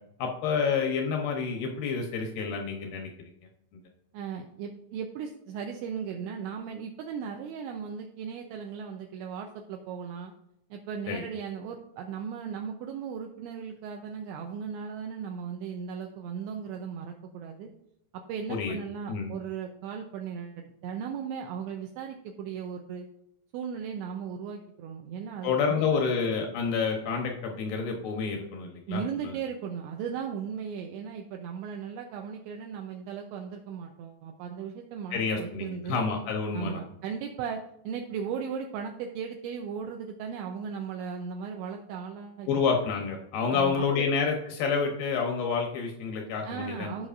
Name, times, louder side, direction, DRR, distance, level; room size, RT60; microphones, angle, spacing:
voice 1, 0.2-3.3 3.7-3.8 11.1-11.2 18.5-18.8 19.1-19.3 25.4-29.4 35.1-36.8 42.5-47.1, left 5 dB, 85° left, 2 dB, 2.1 m, -29 dB
voice 2, 4.1-10.3 10.7-17.7 18.1-23.1 23.5-26.0 28.9-36.0 36.5-42.5 43.5-44.1 46.5-47.1, right 7 dB, 85° right, 3 dB, 2.6 m, -37 dB
15.0 x 5.7 x 2.5 m, 0.80 s
omnidirectional pair, 5.8 m